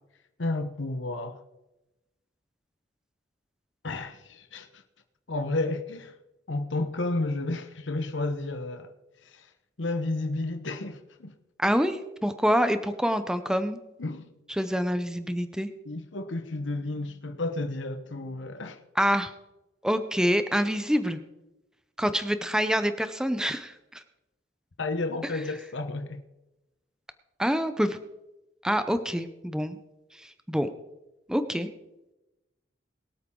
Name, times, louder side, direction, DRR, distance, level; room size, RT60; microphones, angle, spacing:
voice 1, 0.4-1.4 3.8-4.8 5.3-6.1 6.5-8.9 9.2-9.5 9.8-11.3 14.0-14.3 15.9-18.8 24.8-26.2, left 2 dB, 80° left, 1.0 m, -31 dB
voice 2, 11.6-13.8 14.5-15.7 19.0-19.3 19.8-21.2 22.0-24.0 27.4-28.0 28.6-29.8 30.1-30.7 31.3-31.7, equal, 5° right, 0.7 m, -26 dB
23.0 x 8.5 x 3.8 m
head